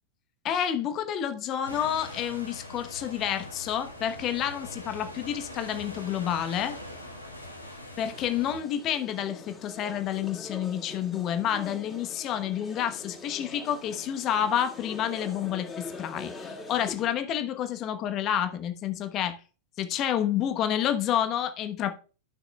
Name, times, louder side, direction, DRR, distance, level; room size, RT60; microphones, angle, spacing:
voice 1, 0.4-6.8 8.0-19.4 19.8-21.9, left 10 dB, 35° left, 1.0 m, -29 dB
sound 1, 1.6-8.6, left 1 dB, 85° left, 1.8 m, -42 dB
sound 2, 8.0-17.2, left 3 dB, 15° left, 2.2 m, -43 dB
13.5 x 6.0 x 2.3 m
figure-of-eight pair, 90°, 0 cm